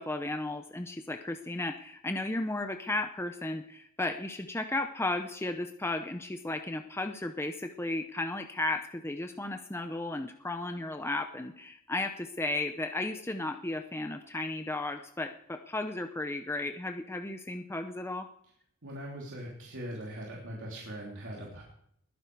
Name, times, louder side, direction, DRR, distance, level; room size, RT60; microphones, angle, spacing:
voice 1, 0.0-18.3, left 2 dB, 10° left, 6 dB, 0.7 m, -34 dB
voice 2, 18.8-21.6, equal, 60° right, -3 dB, 3.1 m, -41 dB
21.0 x 10.5 x 4.7 m, 0.69 s
head